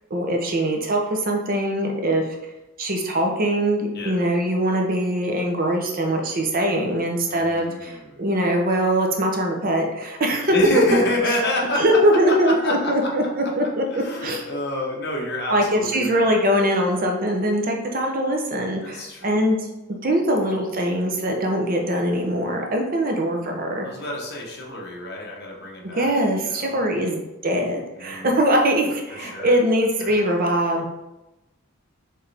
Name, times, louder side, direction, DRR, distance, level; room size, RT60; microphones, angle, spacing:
voice 1, 0.1-2.3 2.8-10.5 11.8-13.8 14.2-14.4 15.5-19.6 19.9-23.9 26.0-30.9, right 1 dB, 40° right, 2 dB, 0.6 m, -22 dB
voice 2, 7.3-8.2 10.5-13.1 13.4-13.5 13.9-16.3 18.8-19.5 23.8-26.8 28.0-28.3 29.2-29.6 30.0-30.2, left 1 dB, 50° left, -1 dB, 1.0 m, -28 dB
4.7 x 3.2 x 3.3 m, 0.98 s
head